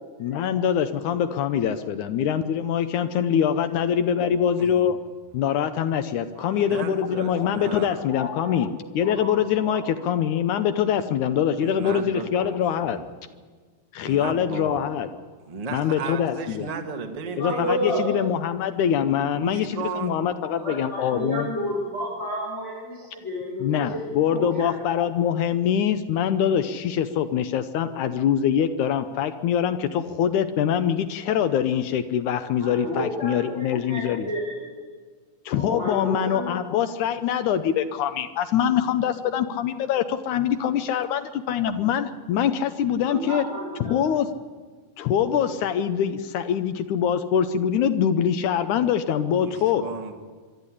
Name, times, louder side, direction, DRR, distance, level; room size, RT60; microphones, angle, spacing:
voice 1, 0.2-5.0 5.3-13.0 13.9-15.1 15.7-16.7 17.4-21.5 23.6-34.3 35.5-43.5 43.8-44.3 45.0-49.8, left 9 dB, 75° left, 10 dB, 2.1 m, -24 dB
voice 2, 6.4-8.1 11.6-13.0 14.0-14.9 15.5-18.0 19.3-20.1 49.3-50.2, right 5 dB, 25° right, 4 dB, 0.7 m, -35 dB
voice 3, 8.2-8.5 8.8-9.3 9.6-9.8 17.3-18.1 20.5-23.6 23.9-24.7 32.6-34.7 35.5-36.5 43.0-43.9, equal, 20° left, -6 dB, 5.8 m, -31 dB
24.0 x 12.0 x 9.9 m, 1.5 s
omnidirectional pair, 3.9 m